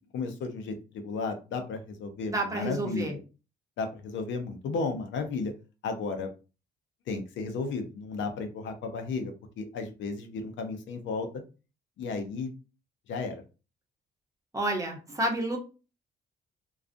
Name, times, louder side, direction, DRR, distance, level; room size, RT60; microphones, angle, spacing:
voice 1, 0.1-3.2 3.8-5.5 5.8-6.3 7.1-11.3 12.0-12.5 13.1-13.4, left 4 dB, 70° left, 6 dB, 0.6 m, -34 dB
voice 2, 2.3-3.1 14.5-15.6, right 1 dB, 15° right, 1 dB, 0.8 m, -29 dB
2.3 x 2.3 x 2.5 m, 0.32 s
cardioid pair, 90°, 20 cm